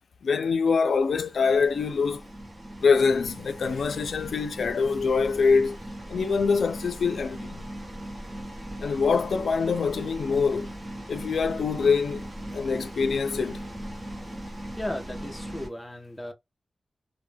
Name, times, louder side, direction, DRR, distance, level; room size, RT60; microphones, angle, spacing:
voice 1, 0.2-2.2 2.8-5.8 6.1-7.6 8.8-10.7 11.1-12.2 12.5-13.6, left 5 dB, 85° left, 0.3 m, -24 dB
sound 1, 0.9-15.7, right 1 dB, 25° right, 0.9 m, -39 dB
voice 2, 14.7-16.3, left 1 dB, 10° left, 0.6 m, -35 dB
2.2 x 2.1 x 3.2 m
wide cardioid pair, 140°, 0 cm